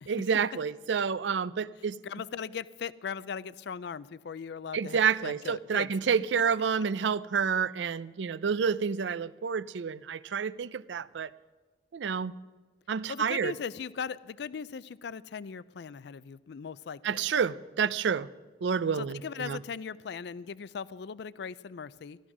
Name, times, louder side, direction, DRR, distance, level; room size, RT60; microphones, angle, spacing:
voice 1, 0.1-2.0 4.7-11.3 11.9-12.4 12.9-13.5 17.0-18.3 18.6-19.6, right 6 dB, 80° right, 0.4 m, -29 dB
voice 2, 2.0-5.9 13.1-17.2 18.9-22.2, left 6 dB, 70° left, 0.4 m, -39 dB
15.5 x 12.5 x 6.0 m
head